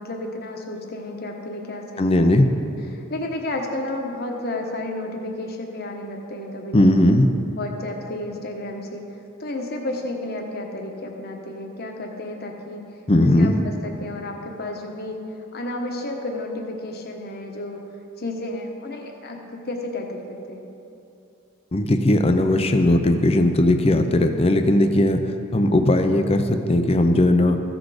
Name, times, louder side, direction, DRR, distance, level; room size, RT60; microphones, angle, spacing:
voice 1, 0.0-2.1 2.9-6.7 7.6-9.0 9.4-12.8 13.2-15.2 15.5-17.8 18.2-20.7, left 2 dB, 50° left, 2 dB, 1.1 m, -32 dB
voice 2, 2.0-2.5 6.7-7.3 13.1-13.6 21.7-25.2 25.5-27.6, left 1 dB, 30° left, 7 dB, 0.6 m, -18 dB
14.5 x 6.2 x 5.0 m, 2.8 s
head